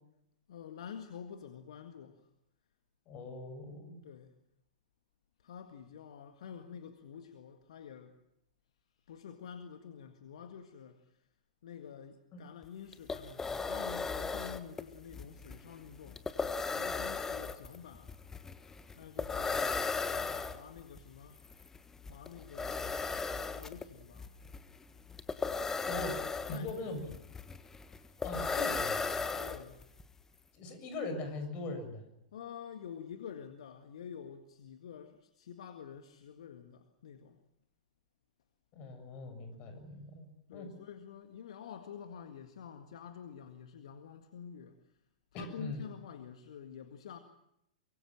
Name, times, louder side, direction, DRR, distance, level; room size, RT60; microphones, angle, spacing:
voice 1, 0.5-2.3 4.0-4.4 5.4-8.2 9.0-11.3 11.6-18.1 19.0-21.5 22.1-24.3 26.5-27.3 29.3-29.8 32.3-37.4 40.5-45.0 45.3-47.2, left 8 dB, 55° left, 1.9 m, -48 dB
voice 2, 3.1-4.0 12.3-12.4 25.8-26.2 26.5-27.0 28.2-29.1 30.5-32.0 38.7-40.7 45.3-45.8, left 2 dB, 30° left, 6.9 m, -41 dB
sound 1, 12.6-12.7 12.9-30.0, left 4 dB, 10° left, 1.4 m, -37 dB
24.0 x 23.5 x 7.5 m
figure-of-eight pair, 105°, 4 cm